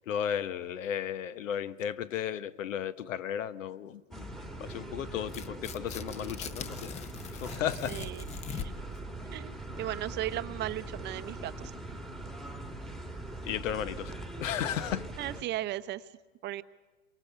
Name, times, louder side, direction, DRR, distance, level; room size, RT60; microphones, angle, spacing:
voice 1, 0.1-4.3 4.6-8.0 13.4-15.1, left 9 dB, 80° left, 1.2 m, -35 dB
sound 1, 4.1-15.4, right 2 dB, ahead, 1.4 m, -41 dB
Tearing, 5.2-9.0, left 6 dB, 15° left, 0.7 m, -42 dB
voice 2, 7.9-8.2 8.5-8.7 9.3-11.7 15.2-16.1 16.4-16.6, right 14 dB, 25° right, 0.7 m, -36 dB
27.0 x 23.5 x 6.9 m
hypercardioid pair, 135°, 38 cm